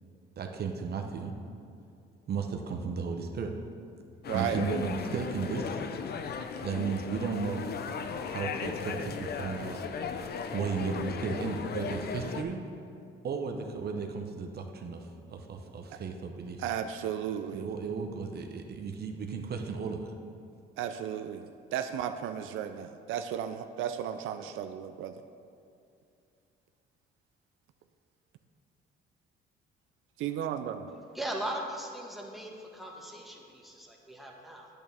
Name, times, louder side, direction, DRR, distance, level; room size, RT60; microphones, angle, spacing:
voice 1, 0.4-1.4 2.3-3.5 4.3-5.8 6.6-7.6 8.3-9.8 10.5-12.6 13.2-16.6 17.5-20.1, right 5 dB, 50° right, 4 dB, 0.8 m, -34 dB
sound 1, 4.2-12.4, left 6 dB, 50° left, 0.6 m, -36 dB
voice 2, 4.3-4.6 15.9-16.0 16.6-17.7 20.8-25.2 30.2-30.9, right 9 dB, 80° right, 8 dB, 0.4 m, -34 dB
voice 3, 31.1-34.7, right 1 dB, ahead, -1 dB, 1.4 m, -39 dB
8.7 x 8.5 x 3.4 m, 2.5 s
cardioid pair, 85°, 20 cm